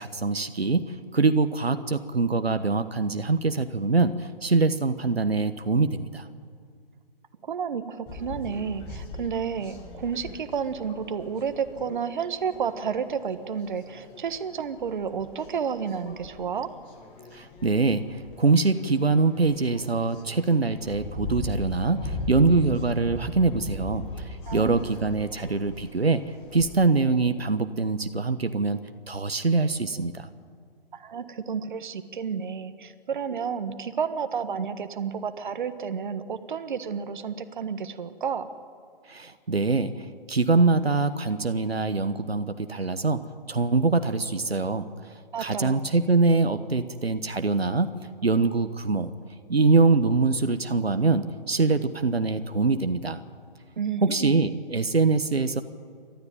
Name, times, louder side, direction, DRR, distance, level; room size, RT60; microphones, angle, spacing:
voice 1, 0.0-6.2 17.3-26.2 26.5-28.8 29.1-30.3 39.1-44.9 45.4-47.9 48.2-49.1 49.5-53.2 54.0-55.6, right 3 dB, 85° right, 9 dB, 1.3 m, -24 dB
voice 2, 7.4-16.7 24.5-24.9 30.9-38.5 45.3-45.8 53.8-54.4, right 6 dB, 55° right, 10 dB, 1.5 m, -31 dB
sound 1, 8.1-26.9, left 1 dB, 20° left, 2.2 m, -39 dB
28.5 x 13.0 x 9.0 m, 2.2 s
figure-of-eight pair, 135°, 30 cm